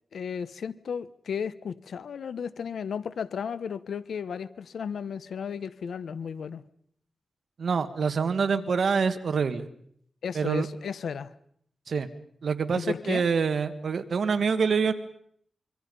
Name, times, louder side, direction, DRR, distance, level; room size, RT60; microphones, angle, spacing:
voice 1, 0.1-6.6 10.2-11.3 12.8-13.2, left 7 dB, 85° left, 16 dB, 1.0 m, -34 dB
voice 2, 7.6-9.7 10.3-10.7 11.9-12.1 12.4-14.9, right 5 dB, 75° right, 9 dB, 1.8 m, -26 dB
26.0 x 24.5 x 5.5 m, 0.67 s
cardioid pair, 75°, 0 cm